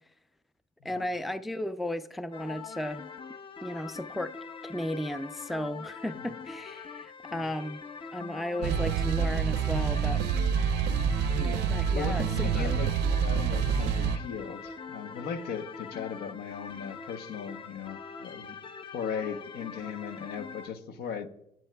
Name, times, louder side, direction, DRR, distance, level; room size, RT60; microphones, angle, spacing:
voice 1, 0.8-3.1 3.6-4.3 4.6-7.8 8.1-10.2 11.6-12.8, left 1 dB, ahead, 0.3 m, -34 dB
sound 1, 2.3-20.7, left 5 dB, 30° left, 0.7 m, -43 dB
sound 2, 8.6-14.2, right 7 dB, 85° right, 0.6 m, -27 dB
voice 2, 11.3-18.6 18.9-21.3, left 7 dB, 70° left, 0.9 m, -38 dB
19.0 x 7.7 x 2.2 m
cardioid pair, 110°, 17 cm